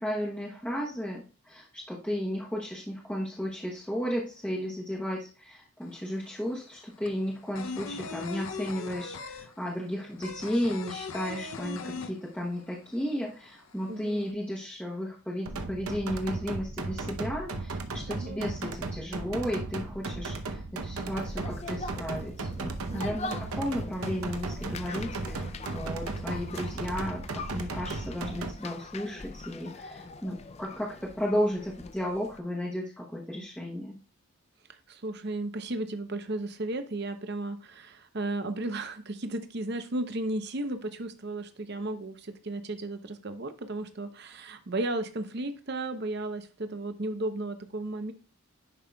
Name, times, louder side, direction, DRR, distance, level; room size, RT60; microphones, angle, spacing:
voice 1, 0.0-34.0, equal, 5° left, -4 dB, 0.9 m, -34 dB
sound 1, 5.8-5.9 6.2-12.8 13.0-13.1 13.4-14.2, left 4 dB, 70° left, 0.6 m, -39 dB
voice 2, 13.9-14.2 18.1-18.5 22.9-23.4 34.7-48.1, right 2 dB, 50° right, 9 dB, 0.7 m, -34 dB
sound 2, 15.5-28.5, right 3 dB, 80° right, 0.8 m, -36 dB
sound 3, 21.1-32.4, left 3 dB, 30° left, 0.4 m, -43 dB
10.5 x 5.4 x 2.3 m, 0.36 s
head